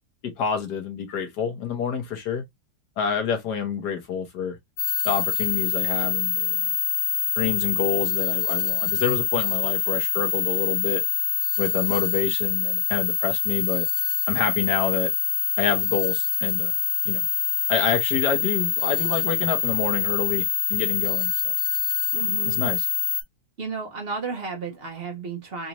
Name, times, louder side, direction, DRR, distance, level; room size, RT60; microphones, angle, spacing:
voice 1, 0.4-2.4 3.0-4.6 5.0-6.7 7.4-11.0 11.6-13.9 14.3-15.1 15.6-16.7 17.0-17.3 17.7-21.5 22.5-22.8, left 7 dB, 65° left, 1.4 m, -27 dB
sound 1, 4.8-23.2, left 8 dB, 85° left, 0.5 m, -25 dB
voice 2, 22.1-22.6 23.6-25.7, right 4 dB, 55° right, 0.6 m, -32 dB
4.0 x 2.5 x 2.8 m
omnidirectional pair, 2.0 m